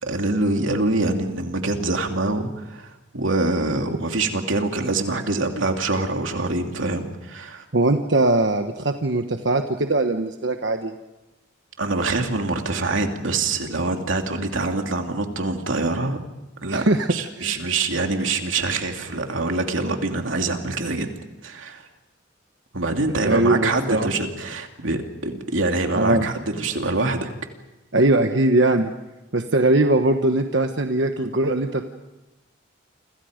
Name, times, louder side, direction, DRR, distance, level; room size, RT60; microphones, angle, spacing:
voice 1, 0.0-7.6 11.8-16.2 16.6-16.8 17.1-21.1 21.4-21.8 22.7-27.3, right 2 dB, 90° right, 4 dB, 2.8 m, -25 dB
voice 2, 7.7-10.9 16.7-17.1 17.4-17.6 23.2-24.1 26.0-26.3 27.9-28.9 29.3-31.8, right 2 dB, 65° right, 5 dB, 1.2 m, -20 dB
30.0 x 26.0 x 5.2 m, 1.0 s
head